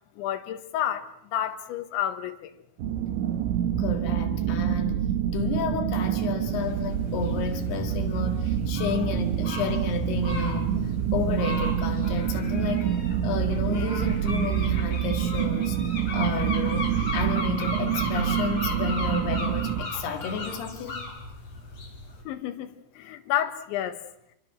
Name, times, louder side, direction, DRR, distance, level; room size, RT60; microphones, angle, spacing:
voice 1, 0.2-2.5 22.3-24.0, left 11 dB, 85° left, 3.8 m, -30 dB
sound 1, 2.8-19.9, right 10 dB, 85° right, 3.6 m, -27 dB
voice 2, 3.8-5.0 5.3-10.7 11.1-12.9 13.2-15.8 16.1-21.1, left 4 dB, 65° left, 3.8 m, -31 dB
sound 2, 6.4-22.2, left 2 dB, 40° left, 4.9 m, -36 dB
28.0 x 23.5 x 6.3 m
omnidirectional pair, 5.2 m